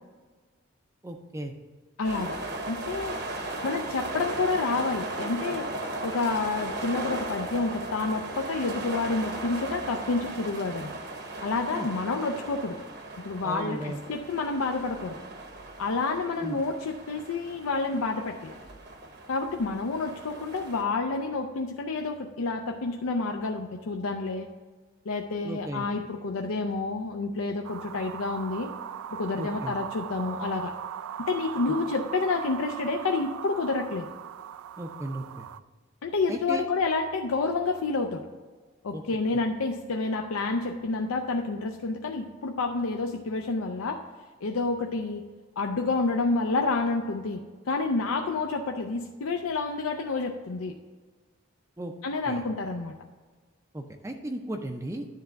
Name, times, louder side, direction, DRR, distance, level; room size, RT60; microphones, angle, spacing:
voice 1, 1.0-1.5 11.7-11.9 13.4-14.0 16.4-16.6 25.4-25.9 29.4-29.7 31.7-31.8 34.8-35.5 36.3-36.6 38.9-39.0 51.8-51.9 52.3-52.4 53.7-55.1, right 1 dB, 15° right, 4 dB, 0.5 m, -35 dB
voice 2, 2.0-2.4 2.6-3.2 3.6-5.7 6.0-10.9 11.4-12.8 13.2-15.2 15.8-18.5 19.3-24.5 25.1-28.7 29.1-30.7 31.2-34.1 36.0-38.2 38.8-44.0 44.4-45.2 45.6-50.7 52.0-52.9, left 3 dB, 85° left, 3 dB, 0.5 m, -29 dB
sound 1, 2.0-20.8, right 2 dB, 50° right, 0.9 m, -37 dB
sound 2, 27.6-35.6, right 9 dB, 80° right, 0.3 m, -39 dB
10.0 x 3.4 x 6.4 m, 1.4 s
head